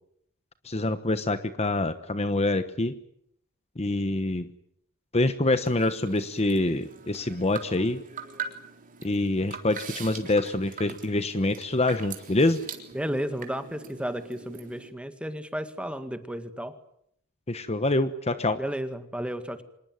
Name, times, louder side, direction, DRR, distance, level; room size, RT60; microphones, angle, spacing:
voice 1, 0.6-2.9 3.8-4.5 5.1-8.0 9.0-12.6 17.5-18.6, left 2 dB, 30° left, 11 dB, 1.1 m, -26 dB
sound 1, 5.6-14.9, right 6 dB, 40° right, 3.7 m, -42 dB
voice 2, 12.9-16.8 18.6-19.6, equal, 5° right, 9 dB, 1.9 m, -33 dB
26.0 x 20.5 x 9.1 m, 0.73 s
head